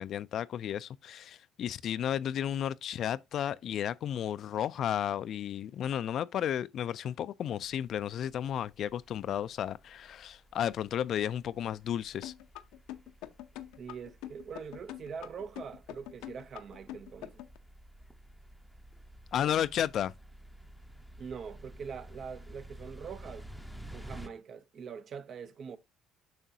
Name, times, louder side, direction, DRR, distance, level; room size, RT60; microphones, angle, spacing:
voice 1, 0.0-12.3 19.3-20.1, left 10 dB, 55° left, 0.3 m, -33 dB
sound 1, 7.6-24.3, right 1 dB, ahead, 0.7 m, -52 dB
sound 2, 12.2-17.6, left 14 dB, 85° left, 0.6 m, -44 dB
voice 2, 13.8-17.4 19.4-19.5 21.2-23.5 23.9-25.8, right 6 dB, 45° right, 0.6 m, -43 dB
7.4 x 5.6 x 2.7 m
cardioid pair, 115°, 0 cm